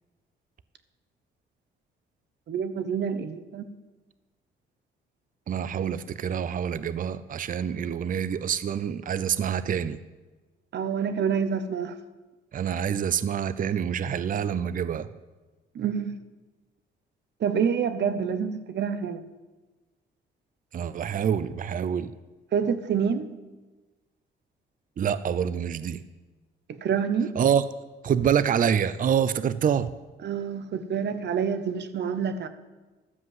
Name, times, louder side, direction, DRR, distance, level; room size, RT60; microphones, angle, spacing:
voice 1, 2.5-3.7 10.7-12.0 15.7-16.2 17.4-19.2 22.5-23.3 26.7-27.3 30.2-32.5, right 7 dB, 60° right, 12 dB, 0.9 m, -27 dB
voice 2, 5.5-10.0 12.5-15.1 20.7-22.1 25.0-26.0 27.4-27.6 28.0-29.9, right 8 dB, 45° right, 16 dB, 0.6 m, -26 dB
12.5 x 7.6 x 7.7 m, 1.2 s
cardioid pair, 90°, 20 cm